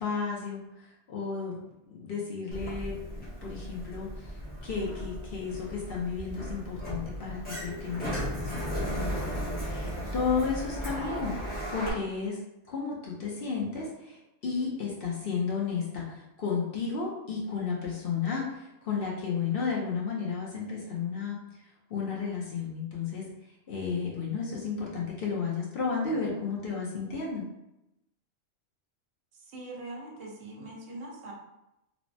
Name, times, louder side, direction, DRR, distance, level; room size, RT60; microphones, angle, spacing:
voice 1, 0.0-1.6 1.8-4.3 4.6-12.4 12.7-21.4 21.9-23.2 23.7-27.4, left 5 dB, 60° left, -3 dB, 0.7 m, -33 dB
Sliding door, 2.5-11.9, equal, 10° left, 0.4 m, -36 dB
voice 2, 29.3-31.3, right 2 dB, 70° right, -1 dB, 0.9 m, -42 dB
3.2 x 2.0 x 2.6 m, 0.89 s
omnidirectional pair, 1.2 m